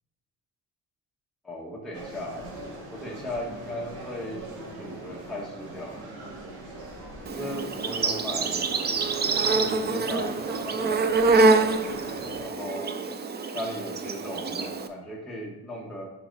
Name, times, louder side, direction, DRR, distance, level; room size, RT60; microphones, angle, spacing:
voice 1, 1.4-2.4 2.9-4.4 4.7-6.3 7.3-8.7 9.0-11.5 12.4-12.9 13.5-16.0, left 1 dB, ahead, -4 dB, 1.3 m, -37 dB
sound 1, 1.9-12.4, right 1 dB, 75° right, 2.1 m, -41 dB
Insect, 7.3-14.9, right 3 dB, 25° right, 0.4 m, -25 dB
5.8 x 5.1 x 3.9 m, 1.1 s
cardioid pair, 120°, 39 cm